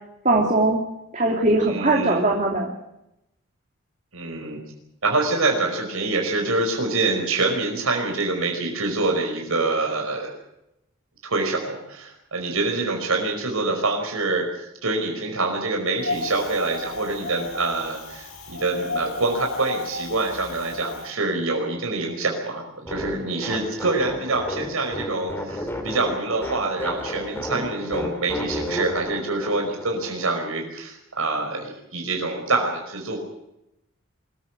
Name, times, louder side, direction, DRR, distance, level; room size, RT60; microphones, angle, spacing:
voice 1, 0.2-0.8 1.1-2.7, right 2 dB, 35° right, 0 dB, 2.8 m, -20 dB
voice 2, 1.7-2.2 4.1-4.6 5.0-10.3 11.2-33.2, right 3 dB, 85° right, 2 dB, 5.1 m, -25 dB
Wind, 16.0-21.1, left 3 dB, 85° left, 5.8 m, -34 dB
sound 1, 22.9-30.3, left 1 dB, 10° left, 3.6 m, -32 dB
24.0 x 14.5 x 9.2 m, 0.85 s
head